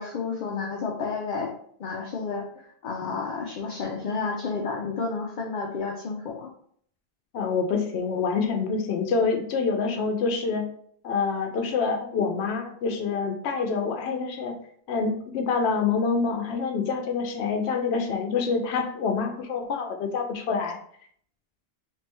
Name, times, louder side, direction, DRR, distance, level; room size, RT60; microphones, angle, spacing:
voice 1, 0.0-1.5 1.8-6.5, left 4 dB, 55° left, 0 dB, 0.6 m, -31 dB
voice 2, 7.3-10.6 11.0-14.5 14.9-20.8, left 5 dB, 90° left, 4 dB, 0.8 m, -26 dB
3.3 x 3.3 x 2.9 m, 0.62 s
omnidirectional pair, 1.1 m